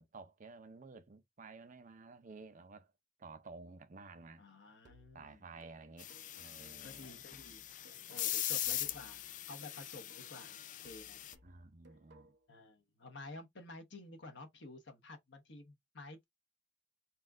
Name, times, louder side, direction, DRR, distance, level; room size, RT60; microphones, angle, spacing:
voice 1, 0.0-2.9 3.2-4.4 5.1-7.2 8.7-8.8 11.4-12.4, right 3 dB, 40° right, 0.6 m, -53 dB
voice 2, 4.4-5.4 6.6-7.7 8.1-11.2 12.5-16.2, left 2 dB, 65° left, 1.1 m, -52 dB
sound 1, 4.8-8.5 8.8-12.5, right 1 dB, 60° right, 1.0 m, -65 dB
sound 2, 6.0-11.3, left 13 dB, 40° left, 0.4 m, -41 dB
4.2 x 2.4 x 3.7 m
head